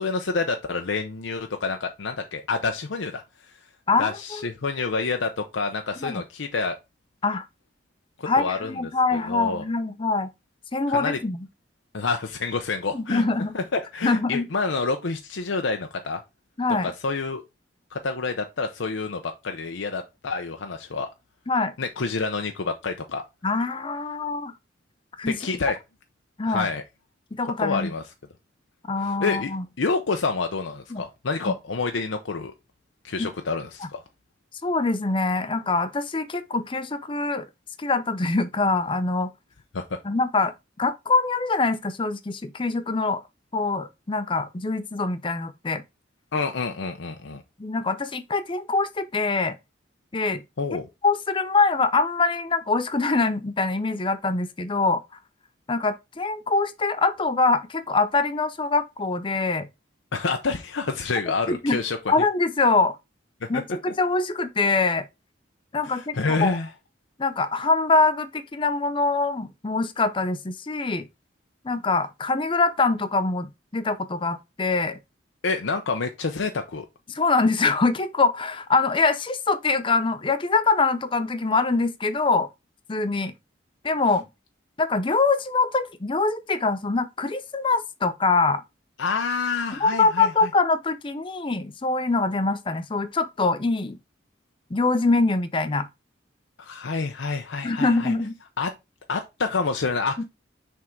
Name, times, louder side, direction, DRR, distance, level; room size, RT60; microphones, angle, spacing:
voice 1, 0.0-3.2 4.0-6.8 8.2-8.7 9.1-9.6 10.9-11.2 11.9-13.2 13.5-16.2 16.8-17.4 17.9-21.1 21.8-23.2 25.3-25.8 26.5-26.8 27.6-28.0 29.0-29.5 29.8-32.5 33.0-34.0 39.7-40.0 46.3-47.4 50.6-50.9 60.1-62.0 63.5-63.6 65.8-66.7 75.4-76.9 89.0-90.3 96.6-98.1 98.6-98.7 99.1-100.2, left 4 dB, 85° left, 0.7 m, -28 dB
voice 2, 3.9-4.5 6.0-6.2 7.2-7.5 8.3-10.3 10.7-11.5 12.9-13.6 14.0-14.5 16.6-16.9 21.5-21.7 23.4-24.5 25.2-25.4 26.4-26.7 27.3-27.9 28.9-29.6 30.9-31.0 31.4-31.5 33.2-33.3 33.8-33.9 34.6-37.5 37.8-39.3 40.0-43.2 43.5-45.8 47.6-49.6 50.1-50.4 51.0-55.0 55.7-59.7 61.5-61.8 62.1-63.0 63.5-65.0 65.7-66.1 66.4-66.6 67.2-71.0 71.6-75.0 77.1-82.5 82.9-83.3 83.8-84.3 84.8-88.6 89.8-94.0 94.7-95.9 97.6-98.4 100.2-100.3, left 3 dB, 25° left, 0.5 m, -24 dB
6.1 x 3.6 x 4.4 m
head